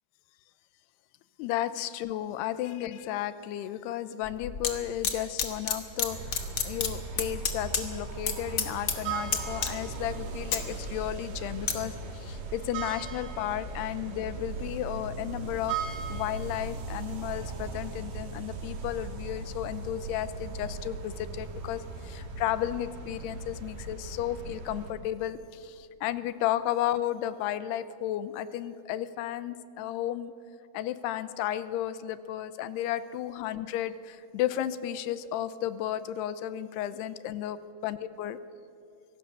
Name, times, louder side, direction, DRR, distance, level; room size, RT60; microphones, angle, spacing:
voice 1, 1.4-15.8 16.1-30.3 30.7-37.6 37.8-38.4, left 12 dB, 90° left, 14 dB, 2.8 m, -33 dB
sound 1, 4.2-4.7 5.0-6.1 6.3-8.3 8.6-9.0 9.3-10.0 10.3-11.7 12.2-12.4, left 7 dB, 65° left, 1.2 m, -29 dB
sound 2, 6.1-24.9, right 4 dB, 70° right, 4.1 m, -38 dB
25.0 x 17.5 x 6.8 m, 2.6 s
omnidirectional pair, 4.7 m